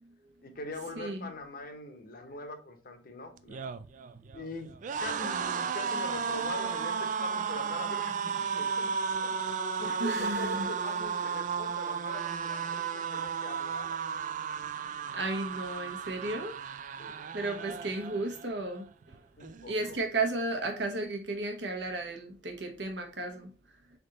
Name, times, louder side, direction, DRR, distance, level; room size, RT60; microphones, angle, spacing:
voice 1, 0.4-3.6 4.3-4.7 5.0-9.4 9.8-14.0 17.0-17.3 19.4-20.0, left 1 dB, 55° left, 0.9 m, -42 dB
voice 2, 0.9-1.3 10.0-10.7 15.1-16.6 17.3-19.2 19.7-23.5, right 2 dB, 70° right, 1.1 m, -34 dB
sound 1, 3.4-18.6 18.9-19.2 19.4-20.2, right 6 dB, 45° right, 0.3 m, -34 dB
3.8 x 3.6 x 3.9 m
head